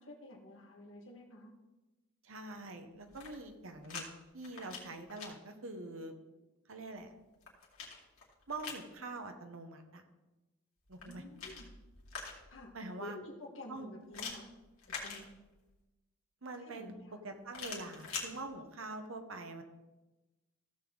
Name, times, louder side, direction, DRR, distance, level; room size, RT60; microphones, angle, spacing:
voice 1, 0.0-1.5 11.1-11.7 12.5-12.7 13.0-14.5 14.9-15.3 16.6-17.2, left 1 dB, 60° left, 0 dB, 1.8 m, -50 dB
voice 2, 2.2-4.1 4.3-6.1 6.7-7.1 8.5-10.0 10.9-11.2 12.7-13.2 13.7-13.9 16.4-16.9 17.2-19.6, right 2 dB, 70° right, 6 dB, 1.2 m, -44 dB
sound 1, 3.0-4.1 4.4-5.3 7.0-8.9 10.9-12.6 14.1-15.7 17.5-18.3, left 5 dB, 75° left, 2.5 m, -45 dB
15.5 x 6.9 x 3.9 m, 1.1 s
head